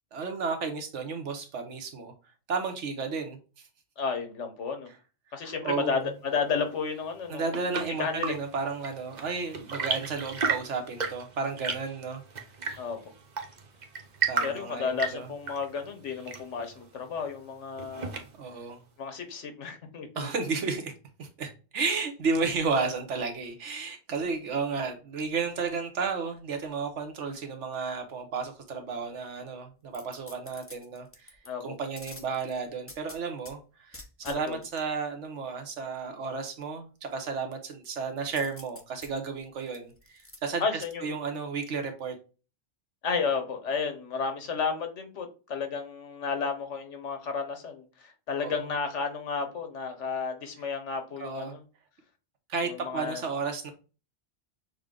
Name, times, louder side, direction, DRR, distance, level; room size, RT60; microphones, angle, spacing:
voice 1, 0.1-2.1 2.5-3.4 5.4-6.1 7.3-12.2 14.3-15.3 18.4-18.8 20.1-20.9 21.2-31.3 31.6-42.2 48.4-48.7 51.2-51.6 52.5-53.7, right 4 dB, 90° right, 6 dB, 1.3 m, -33 dB
voice 2, 4.0-4.9 5.3-7.5 8.0-8.3 12.8-13.0 14.4-18.1 19.0-20.3 31.5-31.7 34.2-34.6 40.6-41.1 43.0-51.6 52.6-53.2, left 5 dB, 85° left, 6 dB, 1.3 m, -32 dB
Chirp tweet / Engine / Tap, 7.1-18.6, right 5 dB, 45° right, 0.8 m, -35 dB
sound 1, 29.9-31.5 32.0-33.5 33.9-34.8 38.3-40.4 40.8-40.9, left 2 dB, 15° left, 0.6 m, -48 dB
6.5 x 2.2 x 3.7 m, 0.34 s
omnidirectional pair, 1.2 m